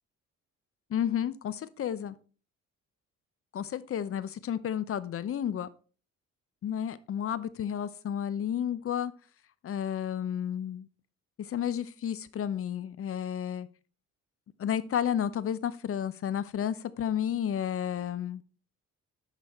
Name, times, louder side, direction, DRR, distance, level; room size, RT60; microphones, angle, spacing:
voice 1, 0.9-2.1 3.5-5.7 6.6-9.1 9.6-10.9 11.4-13.7 14.6-18.4, left 9 dB, 50° left, 16 dB, 0.6 m, -31 dB
10.5 x 4.1 x 4.2 m, 0.39 s
cardioid pair, 90°, 30 cm